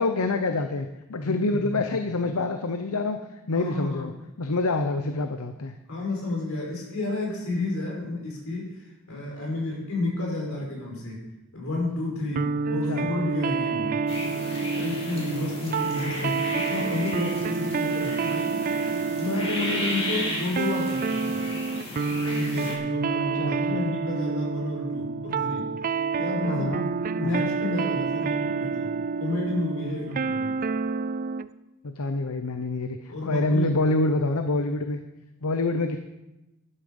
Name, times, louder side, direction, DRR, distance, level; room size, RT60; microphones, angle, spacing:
voice 1, 0.0-3.2 3.5-4.1 4.4-5.7 12.9-13.1 16.2-16.3 23.3-23.8 26.5-26.9 27.2-27.5 31.8-35.0 35.4-36.0, left 2 dB, 85° left, 7 dB, 0.8 m, -26 dB
voice 2, 1.2-2.1 3.5-4.1 5.9-11.2 11.5-14.0 14.7-18.5 19.1-21.4 22.3-25.6 26.1-26.7 27.1-28.9 29.2-30.5 33.1-33.8, left 2 dB, 65° left, -2 dB, 5.3 m, -31 dB
sound 1, 12.3-31.5, right 4 dB, 40° right, 0.4 m, -28 dB
sound 2, 14.1-22.8, left 1 dB, 25° left, 3.2 m, -34 dB
12.0 x 11.5 x 5.4 m, 0.97 s
head